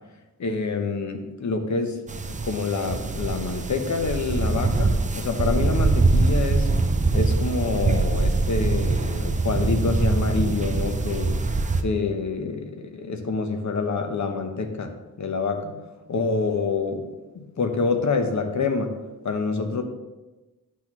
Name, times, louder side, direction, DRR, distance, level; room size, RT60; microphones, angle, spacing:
voice 1, 0.4-2.0 2.5-6.7 7.1-11.4 11.8-15.8 16.1-18.9 19.2-19.8, left 4 dB, 50° left, 6 dB, 0.9 m, -27 dB
sound 1, 2.1-11.8, right 3 dB, 20° right, 0.4 m, -23 dB
10.5 x 6.1 x 3.0 m, 1.1 s
wide cardioid pair, 130°, 38 cm